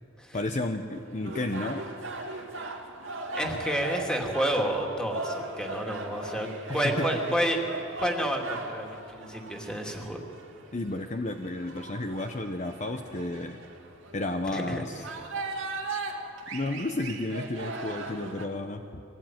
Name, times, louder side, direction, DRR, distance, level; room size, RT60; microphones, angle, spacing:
voice 1, 0.3-1.8 2.2-2.4 6.7-7.1 10.7-13.6 14.1-15.0 16.5-19.0, left 2 dB, 35° left, 5 dB, 0.8 m, -32 dB
sound 1, 1.0-18.4, right 3 dB, 80° right, 2.2 m, -38 dB
voice 2, 3.3-7.6 8.0-10.2 14.5-14.8, right 1 dB, 5° left, 1 dB, 2.5 m, -30 dB
23.5 x 17.5 x 9.4 m, 2.9 s
head